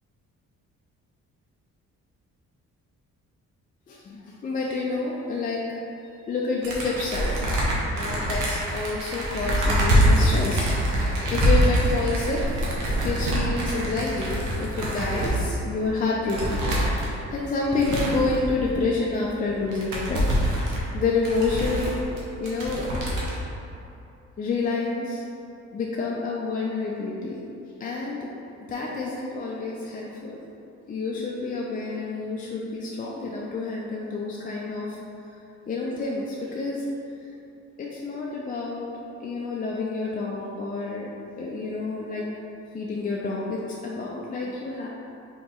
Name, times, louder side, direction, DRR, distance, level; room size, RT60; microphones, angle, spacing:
voice 1, 3.9-5.7 6.3-12.5 13.0-20.2 20.7-21.9 22.4-22.9 24.4-25.2 25.7-27.4 27.8-28.3 28.6-30.4 30.9-35.0 35.3-35.4 35.7-36.8 37.2-37.3 37.8-38.9 39.2-41.1 41.4-42.2 42.7-44.9, left 3 dB, 30° left, -4 dB, 0.4 m, -29 dB
sound 1, 6.6-15.4 15.9-16.0 16.3-17.1 17.7-18.7 19.2-19.3 19.5-22.2 22.4-23.4, equal, 90° right, 0.8 m, -24 dB
3.0 x 2.9 x 3.7 m, 2.8 s
cardioid pair, 90°, 30 cm